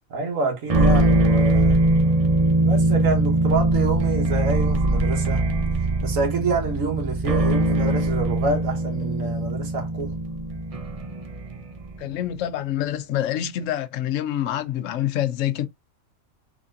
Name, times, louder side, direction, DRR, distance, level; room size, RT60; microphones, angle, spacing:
voice 1, 0.1-1.8 2.6-5.5 6.0-10.2, right 3 dB, 85° right, 1.6 m, -27 dB
sound 1, 0.7-12.1, right 2 dB, 35° right, 0.6 m, -21 dB
voice 2, 12.0-15.7, left 11 dB, 75° left, 1.0 m, -26 dB
3.9 x 3.6 x 2.5 m
omnidirectional pair, 1.4 m